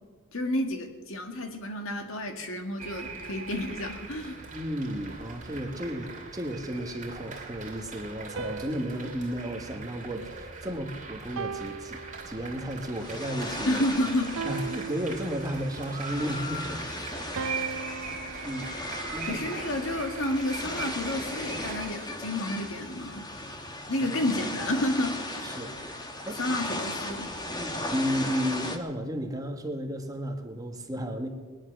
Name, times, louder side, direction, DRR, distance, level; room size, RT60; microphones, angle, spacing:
voice 1, 0.3-4.4 13.6-14.4 19.2-23.3 23.9-25.5 26.3-27.3, left 1 dB, 75° left, 5 dB, 1.8 m, -30 dB
sound 1, 2.8-21.9, right 4 dB, 40° right, 2.6 m, -41 dB
voice 2, 4.5-13.8 14.4-16.8 18.0-19.4 23.9-24.0 25.4-26.4 27.6-31.3, equal, 20° right, 4 dB, 1.4 m, -34 dB
sound 2, 8.4-10.8 11.4-12.8 14.4-15.8 17.4-19.7, right 4 dB, 75° right, 0.6 m, -39 dB
sound 3, 12.9-28.8, left 1 dB, 20° left, 1.2 m, -37 dB
20.0 x 10.0 x 6.4 m, 1.4 s
head